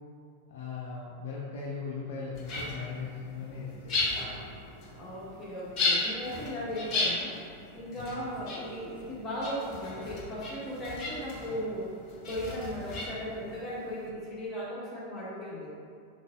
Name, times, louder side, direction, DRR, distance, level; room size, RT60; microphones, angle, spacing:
voice 1, 0.5-4.1 7.9-8.1, left 4 dB, 60° left, -4 dB, 0.5 m, -38 dB
sound 1, 2.4-14.1, left 3 dB, 35° left, 0.9 m, -36 dB
voice 2, 4.9-7.4 7.7-11.9 12.3-15.7, equal, 20° left, -8 dB, 1.3 m, -37 dB
4.5 x 3.9 x 2.4 m, 2.2 s
figure-of-eight pair, 90°, 0 cm